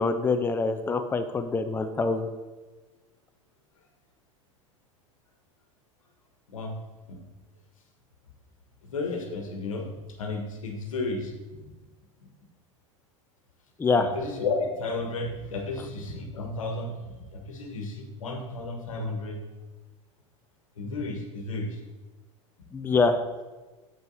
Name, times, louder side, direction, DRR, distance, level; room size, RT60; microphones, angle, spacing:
voice 1, 0.0-2.3 13.8-14.1 22.7-23.2, left 4 dB, 15° left, 7 dB, 0.5 m, -25 dB
voice 2, 8.8-11.3 14.0-19.4 20.8-21.8, left 3 dB, 85° left, 2 dB, 1.3 m, -33 dB
7.7 x 5.4 x 4.0 m, 1.2 s
hypercardioid pair, 90°, 17 cm